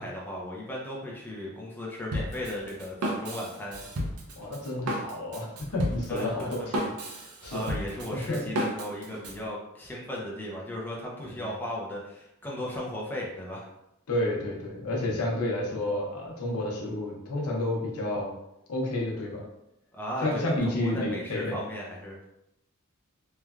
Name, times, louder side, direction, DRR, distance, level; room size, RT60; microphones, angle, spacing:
voice 1, 0.0-3.8 6.1-6.7 7.5-13.6 15.1-15.2 19.9-22.2, left 1 dB, 10° left, -4 dB, 0.4 m, -36 dB
Drum kit, 2.1-9.4, equal, 85° right, 0.6 m, -33 dB
voice 2, 4.4-6.8 7.4-7.7 8.1-8.4 11.3-11.5 14.1-18.3 18.7-19.4 20.2-21.6, left 1 dB, 85° left, -1 dB, 0.7 m, -30 dB
3.1 x 2.2 x 2.3 m, 0.86 s
head